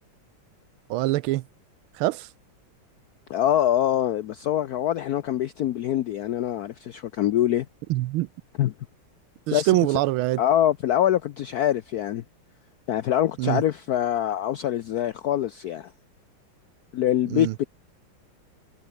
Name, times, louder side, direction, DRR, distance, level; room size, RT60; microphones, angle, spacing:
voice 1, 0.9-1.4 2.0-2.3 7.9-8.3 9.5-10.4 13.4-13.6 17.3-17.5, right 17 dB, 85° right, 1.5 m, -24 dB
voice 2, 3.3-7.7 8.6-8.7 9.5-9.7 10.4-12.2 12.9-15.9 16.9-17.7, left 11 dB, 75° left, 0.9 m, -24 dB
omnidirectional pair, 2.3 m